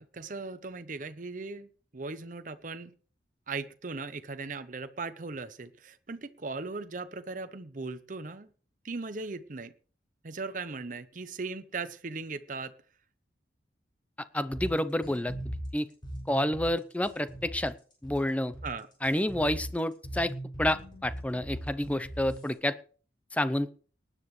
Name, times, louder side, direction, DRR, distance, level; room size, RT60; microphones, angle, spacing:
voice 1, 0.0-2.9 3.5-8.5 8.8-9.7 10.2-12.7 18.6-18.9, right 3 dB, 45° right, 11 dB, 0.8 m, -38 dB
voice 2, 14.3-15.9 16.3-17.7 18.0-18.5 19.0-20.3 20.6-22.8 23.3-23.7, left 1 dB, 10° left, 13 dB, 0.6 m, -29 dB
sound 1, 14.5-22.5, equal, 25° left, 6.6 m, -40 dB
19.0 x 10.0 x 3.2 m, 0.40 s
head